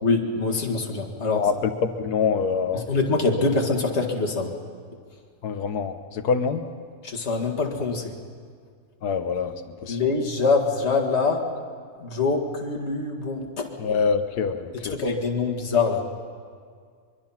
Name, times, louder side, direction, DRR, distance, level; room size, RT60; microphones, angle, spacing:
voice 1, 0.0-1.5 2.7-4.5 7.0-8.1 9.9-11.5 12.0-14.0 14.9-16.0, left 4 dB, 45° left, 0 dB, 2.2 m, -24 dB
voice 2, 1.4-2.8 5.4-6.6 9.0-9.5 9.8-10.0 13.8-15.0, left 6 dB, 80° left, 9 dB, 1.6 m, -25 dB
23.5 x 23.5 x 5.8 m, 2.1 s
omnidirectional pair, 1.7 m